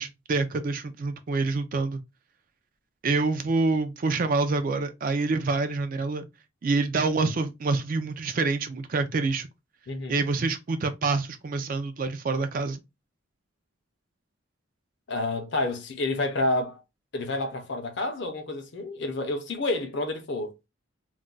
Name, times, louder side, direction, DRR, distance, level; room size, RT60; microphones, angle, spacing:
voice 1, 0.0-2.0 3.0-6.3 6.6-9.5 10.1-12.8, right 3 dB, 40° right, 0.3 m, -26 dB
voice 2, 9.9-10.2 15.1-16.8 17.1-20.5, left 2 dB, 55° left, 0.6 m, -29 dB
2.3 x 2.1 x 3.7 m
head